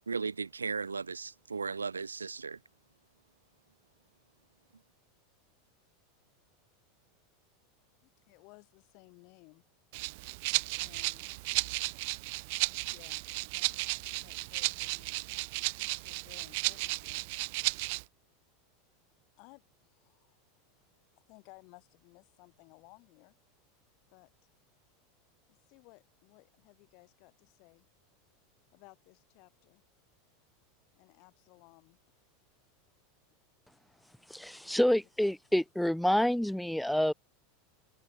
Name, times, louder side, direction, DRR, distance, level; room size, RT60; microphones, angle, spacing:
voice 1, 0.1-2.6, right 5 dB, 85° right, 0.7 m, -36 dB
voice 2, 8.0-9.6 10.8-11.4 12.9-13.2 13.5-13.7 14.2-15.2 16.0-17.3 19.4-20.4 21.3-23.3 24.1-24.3 25.5-27.8 28.7-29.8 30.9-32.0 34.6-34.9, left 32 dB, 55° left, 5.7 m, -59 dB
Rattle (instrument), 9.9-18.0, right 27 dB, 60° right, 0.8 m, -34 dB
voice 3, 34.3-37.1, left 1 dB, ahead, 0.5 m, -28 dB
figure-of-eight pair, 85°, 0 cm